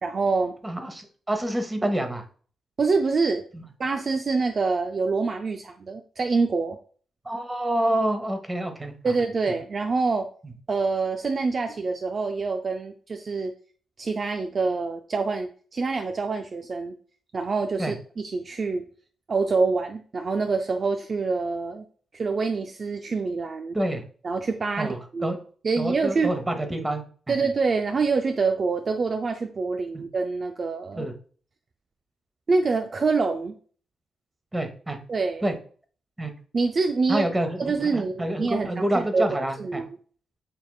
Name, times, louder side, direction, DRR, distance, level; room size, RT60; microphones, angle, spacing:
voice 1, 0.0-0.5 2.8-3.4 3.8-6.8 9.0-10.3 10.7-13.5 14.0-16.9 17.3-18.8 19.3-21.8 22.1-23.8 24.2-25.4 25.6-26.3 27.3-31.1 32.5-33.6 35.1-35.4 36.5-37.3 37.6-39.3 39.6-39.9, right 4 dB, 50° right, 6 dB, 0.4 m, -26 dB
voice 2, 0.6-2.2 3.5-3.6 7.2-8.9 17.8-17.9 23.7-24.0 24.8-25.4 25.8-27.0 29.9-30.0 30.9-31.1 34.5-35.0 35.4-35.5 36.2-36.3 37.1-39.8, right 1 dB, 20° right, 7 dB, 1.0 m, -27 dB
6.7 x 2.9 x 2.3 m, 0.43 s
cardioid pair, 60°, 0 cm